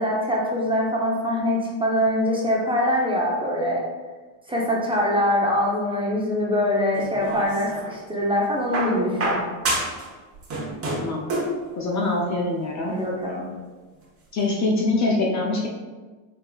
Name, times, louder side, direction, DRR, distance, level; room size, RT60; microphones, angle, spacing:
voice 1, 0.0-3.8 4.5-9.4 12.9-13.5, left 1 dB, 10° right, -3 dB, 0.6 m, -23 dB
sound 1, 6.9-7.9 8.7-10.1 10.3-11.6 12.7-12.8, right 1 dB, 30° right, 1.1 m, -27 dB
voice 2, 11.8-13.0 14.3-15.7, left 2 dB, 35° left, -1 dB, 0.5 m, -24 dB
4.2 x 3.6 x 2.3 m, 1.3 s
cardioid pair, 110°, 49 cm